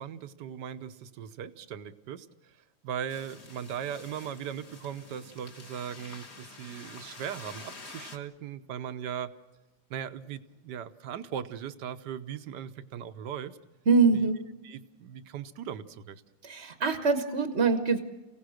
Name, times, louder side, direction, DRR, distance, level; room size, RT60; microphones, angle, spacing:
voice 1, 0.0-2.3 2.8-9.3 9.9-13.6 14.1-14.2 14.6-16.2, right 9 dB, 65° right, 11 dB, 1.4 m, -38 dB
sound 1, 3.1-8.2, left 3 dB, 35° left, 1.7 m, -48 dB
voice 2, 13.9-14.5 16.4-18.0, right 4 dB, 40° right, 7 dB, 1.3 m, -24 dB
29.5 x 17.0 x 6.4 m, 1.1 s
omnidirectional pair, 2.1 m